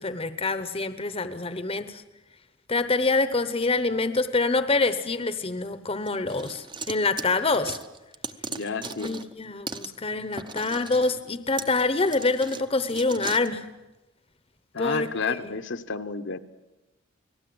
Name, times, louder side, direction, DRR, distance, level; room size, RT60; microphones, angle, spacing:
voice 1, 0.0-2.0 2.7-7.8 8.8-13.7 14.8-15.5, left 3 dB, 30° left, 11 dB, 0.9 m, -26 dB
sound 1, 6.1-9.3 9.7-9.9 10.3-13.5, right 4 dB, 20° right, 0.9 m, -38 dB
voice 2, 8.5-9.1 14.7-16.4, left 4 dB, 60° left, 7 dB, 1.0 m, -31 dB
29.5 x 19.5 x 7.8 m, 1.0 s
head